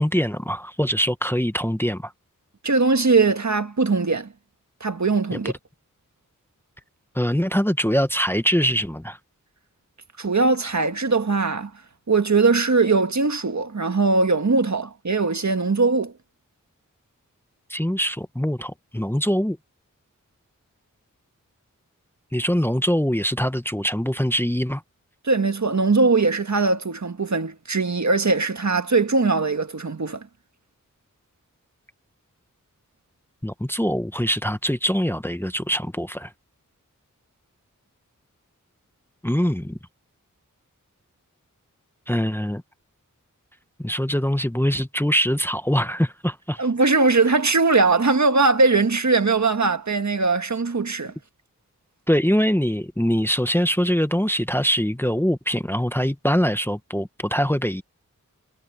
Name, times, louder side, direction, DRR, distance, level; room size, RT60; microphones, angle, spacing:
voice 1, 0.0-2.1 7.1-9.2 17.7-19.6 22.3-24.8 33.4-36.3 39.2-39.8 42.1-42.6 43.8-46.6 52.1-57.8, equal, 5° left, 1.0 m, -23 dB
voice 2, 2.6-4.3 4.8-5.5 10.2-11.7 12.1-16.1 25.2-30.3 46.6-51.1, right 3 dB, 55° right, 1.7 m, -20 dB
wide cardioid pair, 45°, 33 cm